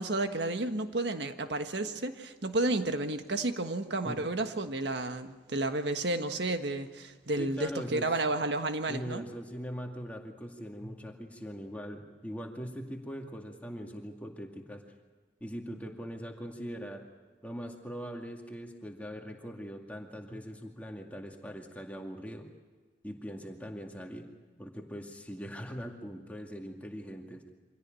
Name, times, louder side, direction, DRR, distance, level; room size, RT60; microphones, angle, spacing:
voice 1, 0.0-9.2, right 2 dB, 75° right, 7 dB, 1.5 m, -31 dB
voice 2, 7.4-8.1 8.9-14.8 15.4-17.0 17.4-22.5 23.0-24.3 24.6-27.5, equal, 10° left, 1 dB, 2.2 m, -41 dB
25.0 x 17.0 x 9.1 m, 1.3 s
head